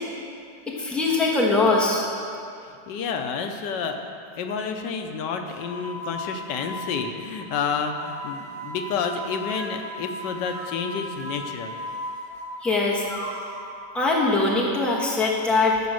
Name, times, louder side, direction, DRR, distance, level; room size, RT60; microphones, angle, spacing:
voice 1, 0.8-2.1 12.6-13.0 13.9-15.9, left 3 dB, ahead, -4 dB, 1.1 m, -21 dB
voice 2, 2.9-4.0 4.4-11.8, left 5 dB, 85° left, 5 dB, 1.4 m, -29 dB
sound 1, 5.5-13.6, equal, 70° right, 2.4 m, -37 dB
14.0 x 5.1 x 6.3 m, 2.4 s
omnidirectional pair, 1.8 m